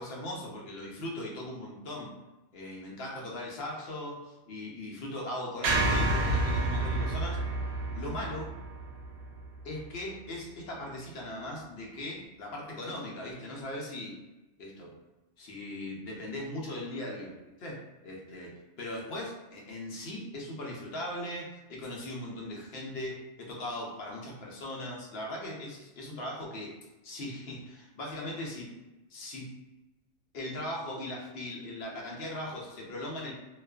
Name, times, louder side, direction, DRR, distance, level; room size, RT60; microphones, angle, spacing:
voice 1, 0.0-2.1 2.5-7.4 7.9-8.5 9.6-14.2 14.6-14.9 15.4-26.8 27.0-28.7 29.1-29.5 30.3-33.3, left 1 dB, 65° left, -2 dB, 0.8 m, -39 dB
sound 1, 5.6-9.9, right 2 dB, 65° right, 0.8 m, -30 dB
2.4 x 2.3 x 2.2 m, 1.0 s
omnidirectional pair, 1.2 m